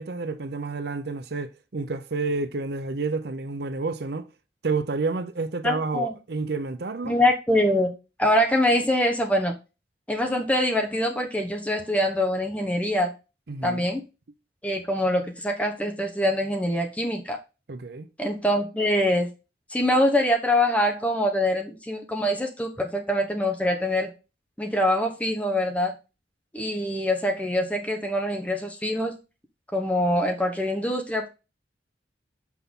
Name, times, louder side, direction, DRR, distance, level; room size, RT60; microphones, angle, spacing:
voice 1, 0.0-4.3 4.6-7.2 13.5-13.9 17.7-18.1, right 3 dB, 60° right, 0.6 m, -30 dB
voice 2, 5.6-6.2 7.1-7.9 8.2-9.5 10.1-13.1 13.6-14.0 14.6-17.4 18.2-19.3 19.7-24.1 24.6-25.9 26.5-29.2 29.7-31.3, left 1 dB, 10° left, 1.0 m, -24 dB
7.0 x 6.1 x 3.7 m
head